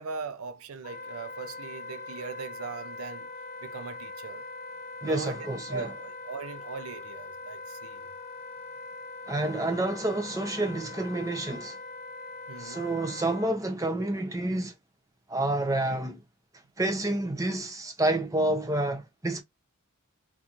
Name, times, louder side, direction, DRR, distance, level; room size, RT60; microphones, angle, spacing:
voice 1, 0.0-3.3 3.6-4.4 5.0-8.0 12.5-12.8, right 4 dB, 75° right, 0.5 m, -39 dB
Wind instrument woodwind instrument, 0.8-13.5, left 3 dB, 45° left, 1.2 m, -42 dB
voice 2, 5.0-5.9 9.3-11.8 12.6-14.7 15.3-16.2 16.8-19.4, right 1 dB, 15° right, 0.7 m, -29 dB
3.7 x 2.5 x 2.9 m
head